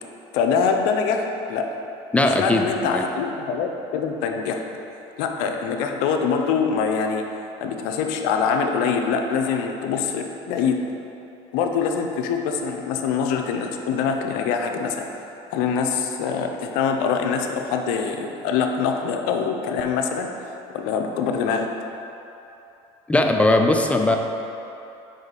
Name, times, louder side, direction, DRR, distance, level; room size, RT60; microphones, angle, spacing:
voice 1, 0.3-1.7 2.2-4.6 5.2-7.2 7.6-10.8 11.5-20.3 20.7-21.7, left 6 dB, 75° left, 4 dB, 0.6 m, -24 dB
voice 2, 2.1-3.0 23.1-24.2, left 2 dB, 10° left, 4 dB, 0.4 m, -19 dB
5.1 x 5.0 x 4.0 m, 2.9 s
supercardioid pair, 105°, 15 cm